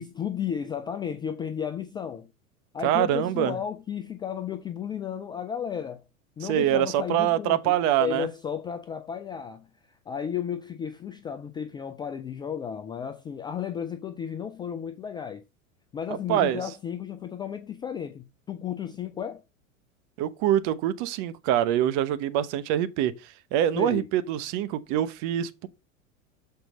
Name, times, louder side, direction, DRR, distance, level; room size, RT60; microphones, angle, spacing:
voice 1, 0.0-2.3 2.7-6.0 6.4-7.7 8.0-9.7 10.1-15.4 15.9-19.4 23.8-24.1, left 8 dB, 10° left, 0.3 m, -33 dB
voice 2, 2.8-3.6 6.4-8.3 16.1-16.6 20.2-25.7, right 11 dB, 45° right, 0.8 m, -25 dB
6.6 x 4.4 x 5.2 m
hypercardioid pair, 90°, 41 cm